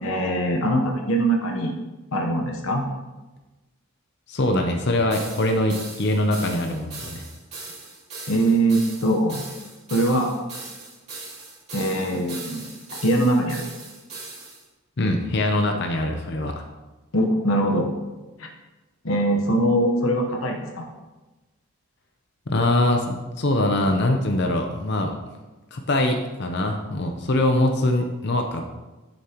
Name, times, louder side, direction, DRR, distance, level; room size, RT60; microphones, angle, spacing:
voice 1, 0.0-1.7 2.1-2.8 8.3-9.4 9.9-10.4 11.7-12.7 13.0-13.7 17.1-17.9 18.4-18.5 19.0-20.9, right 1 dB, 75° left, 2 dB, 1.1 m, -22 dB
voice 2, 4.3-7.2 15.0-16.6 22.5-25.1 25.7-28.6, left 1 dB, 50° left, 4 dB, 0.7 m, -23 dB
sound 1, 5.1-14.6, right 3 dB, 30° right, 3.2 m, -39 dB
11.0 x 7.4 x 3.0 m, 1.1 s
head